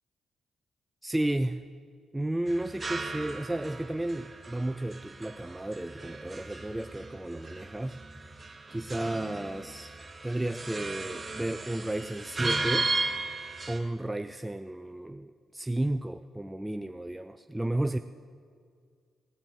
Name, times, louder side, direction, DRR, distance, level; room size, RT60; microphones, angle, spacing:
voice 1, 1.0-1.6 2.1-8.0 8.7-9.9 10.2-12.9 13.7-18.0, right 1 dB, 10° right, 9 dB, 0.4 m, -33 dB
sound 1, 2.5-13.8, right 3 dB, 30° right, 1.3 m, -36 dB
16.0 x 5.5 x 9.0 m, 2.1 s
hypercardioid pair, 50°, 0 cm